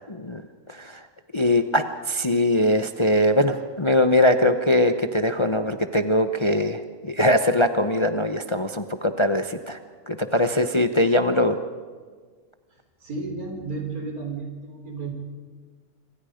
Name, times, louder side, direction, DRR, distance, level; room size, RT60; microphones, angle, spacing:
voice 1, 0.1-0.4 0.7-1.0 1.3-9.8 10.1-11.6, left 1 dB, 25° left, 8 dB, 0.7 m, -21 dB
voice 2, 13.0-15.1, right 3 dB, 75° right, 2 dB, 4.5 m, -33 dB
26.0 x 25.5 x 5.1 m, 1.5 s
omnidirectional pair, 1.5 m